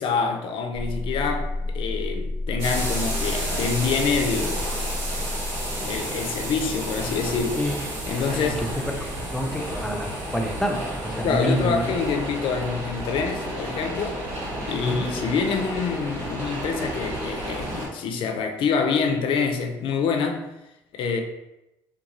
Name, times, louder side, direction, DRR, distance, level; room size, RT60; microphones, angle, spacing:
voice 1, 0.0-4.6 5.9-7.6 8.1-8.7 11.2-14.2 14.7-20.5 20.9-21.2, left 5 dB, 65° left, 0.4 m, -26 dB
sound 1, 0.7-9.6, left 2 dB, 55° right, 0.5 m, -32 dB
sound 2, 2.6-17.9, right 1 dB, 85° right, 1.2 m, -31 dB
voice 2, 8.3-8.7 9.0-11.9 14.8-15.1, equal, 5° left, 0.5 m, -28 dB
2.5 x 2.2 x 2.9 m
supercardioid pair, 75°, 9 cm